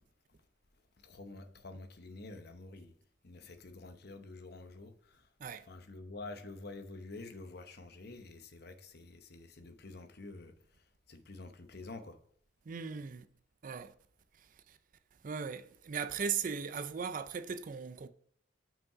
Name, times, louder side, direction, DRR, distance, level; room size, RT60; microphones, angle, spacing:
voice 1, 1.0-2.9 3.2-5.3 5.7-12.2, left 2 dB, 50° left, 0.8 m, -48 dB
voice 2, 12.7-13.3 13.6-13.9 14.4-14.8 15.2-18.1, right 6 dB, 40° right, 0.4 m, -38 dB
6.0 x 5.4 x 4.9 m
head